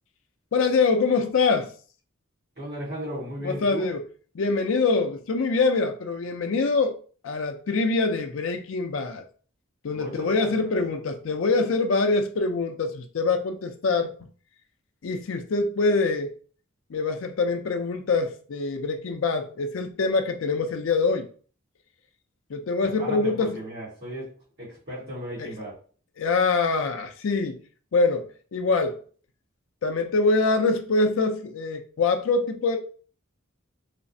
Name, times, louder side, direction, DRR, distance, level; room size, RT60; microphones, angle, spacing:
voice 1, 0.5-1.7 3.4-4.0 4.3-7.0 7.2-9.2 9.8-14.1 15.0-16.3 16.9-21.3 22.5-23.6 25.4-25.5 26.2-27.6 27.9-28.2 28.5-29.0 29.8-32.8, left 3 dB, 70° left, 0.4 m, -24 dB
voice 2, 2.6-3.9 9.9-10.7 23.0-24.3 24.6-25.7, equal, 50° right, 1.3 m, -35 dB
3.2 x 2.0 x 2.6 m
head